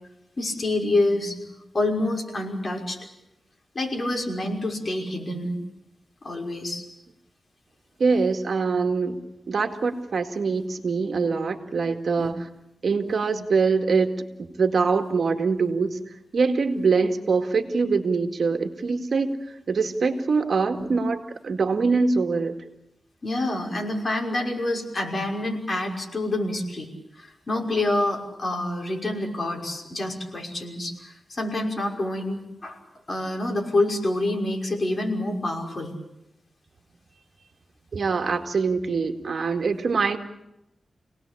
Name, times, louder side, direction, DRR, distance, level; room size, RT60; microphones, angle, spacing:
voice 1, 0.4-3.0 3.7-5.5 6.2-6.8 12.2-12.3 20.8-20.9 23.2-26.9 27.2-32.8 33.1-35.9, left 2 dB, 40° left, 1 dB, 5.9 m, -27 dB
voice 2, 8.0-9.2 9.5-12.5 12.8-14.1 14.4-16.0 16.3-19.3 19.7-22.5 37.9-40.2, right 4 dB, 65° right, 5 dB, 2.1 m, -23 dB
28.0 x 19.0 x 8.6 m, 0.89 s
wide cardioid pair, 90°, 0 cm